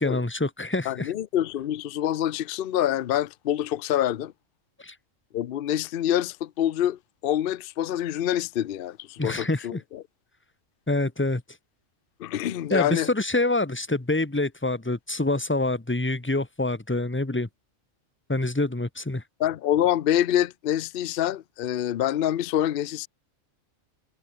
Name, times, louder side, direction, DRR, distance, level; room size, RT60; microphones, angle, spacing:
voice 1, 0.0-1.1 4.8-4.9 9.2-9.8 10.9-11.4 12.7-17.5 18.3-19.2, left 2 dB, 10° left, 1.2 m, -26 dB
voice 2, 0.9-4.3 5.3-10.0 12.2-13.1 19.4-23.1, left 11 dB, 55° left, 0.7 m, -26 dB
omnidirectional pair, 1.3 m